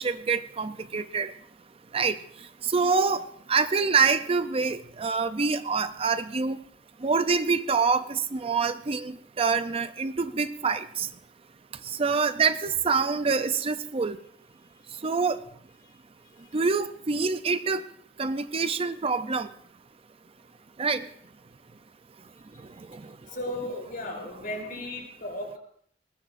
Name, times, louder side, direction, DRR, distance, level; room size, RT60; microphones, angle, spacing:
voice 1, 0.0-1.3 1.9-2.2 2.6-6.6 7.0-11.1 12.0-14.2 15.0-15.4 16.5-17.8 18.2-19.5 20.8-21.1 22.9-23.0, right 4 dB, 30° right, 12 dB, 0.5 m, -26 dB
voice 2, 15.8-16.8 23.3-25.6, left 1 dB, 50° left, 1 dB, 5.7 m, -37 dB
21.5 x 19.5 x 2.6 m, 0.63 s
head